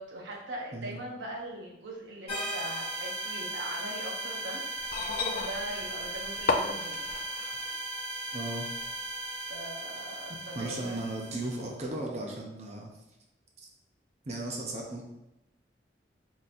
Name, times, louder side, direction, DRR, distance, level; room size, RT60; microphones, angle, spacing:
voice 1, 0.0-7.0 9.3-11.0, right 1 dB, 85° right, -2 dB, 0.8 m, -41 dB
sound 1, 2.3-11.7, right 2 dB, 35° left, 1.4 m, -37 dB
sound 2, 4.8-7.8 8.8-8.9, left 4 dB, 50° left, 0.3 m, -33 dB
voice 2, 8.3-8.7 10.6-12.9 13.6-13.7 14.3-15.0, right 2 dB, 35° right, 0 dB, 0.6 m, -36 dB
4.2 x 3.9 x 2.5 m, 0.91 s
head